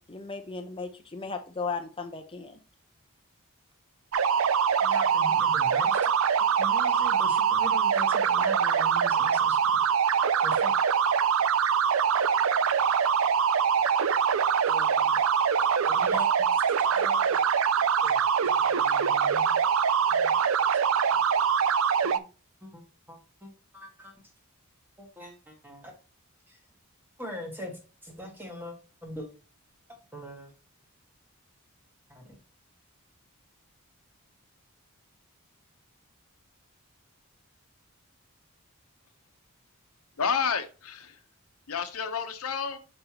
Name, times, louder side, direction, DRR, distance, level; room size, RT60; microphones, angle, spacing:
voice 1, 0.0-2.6, left 4 dB, 25° left, 0.6 m, -36 dB
sound 1, 4.1-22.2, right 7 dB, 65° right, 0.4 m, -24 dB
voice 2, 4.8-6.1 6.4-9.8 10.4-10.7 14.6-15.2 15.6-17.4 18.0-18.2 18.5-19.6 20.1-20.4 22.0-22.2 22.6-22.8 23.1-24.1 25.0-25.9 26.5-26.6 27.2-27.7 28.0-28.7 29.0-29.3 30.1-30.5 32.1-32.3, equal, 10° right, 1.5 m, -42 dB
voice 3, 40.2-41.2 41.7-42.8, left 6 dB, 80° left, 0.9 m, -30 dB
6.6 x 5.4 x 2.9 m
head